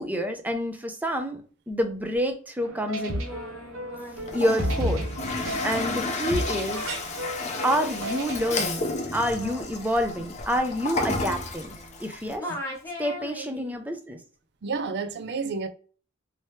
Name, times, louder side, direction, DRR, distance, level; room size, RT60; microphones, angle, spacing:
voice 1, 0.0-1.4 1.7-3.2 4.3-5.0 5.6-6.8 7.6-8.9 9.1-11.7 12.0-12.5 13.0-14.2, equal, 10° right, 0.5 m, -28 dB
sound 1, 2.6-8.7, equal, 75° right, 0.8 m, -33 dB
Singing, 3.0-12.1 12.4-13.8, left 1 dB, 15° left, 1.0 m, -42 dB
Toilet flush, 4.2-12.3, left 3 dB, 35° left, 0.6 m, -32 dB
voice 2, 14.6-15.7, right 4 dB, 55° right, 0.5 m, -30 dB
3.1 x 2.8 x 3.1 m
head